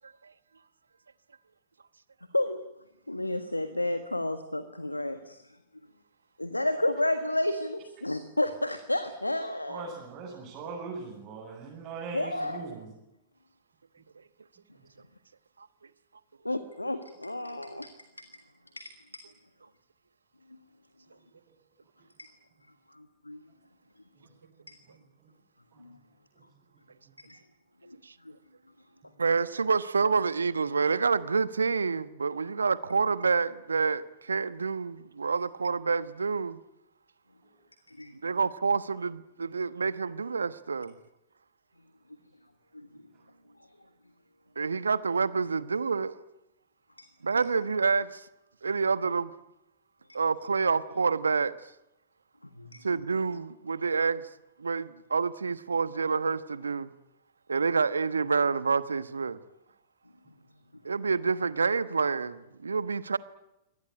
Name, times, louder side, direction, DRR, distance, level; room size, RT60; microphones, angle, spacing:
voice 1, 3.1-5.4 6.4-9.9 12.1-12.7 16.4-17.9 18.8-19.2 22.2-22.3 22.9-23.4 24.7-24.8 25.8-26.0 27.3-27.4 27.8-28.0 28.2-28.3 37.9-38.1 42.7-42.9 43.6-43.7 47.0-47.1 47.3-47.4 52.6-53.0, left 1 dB, 90° left, 1.5 m, -31 dB
voice 2, 9.7-12.9 25.8-25.9, right 4 dB, 35° right, 7.6 m, -40 dB
voice 3, 29.2-36.6 38.2-40.9 44.6-46.2 47.2-48.3 48.6-49.3 50.1-51.5 52.8-54.2 54.6-56.9 57.5-59.4 60.8-63.2, right 5 dB, 75° right, 1.1 m, -28 dB
25.0 x 18.5 x 9.9 m
figure-of-eight pair, 105°, 0 cm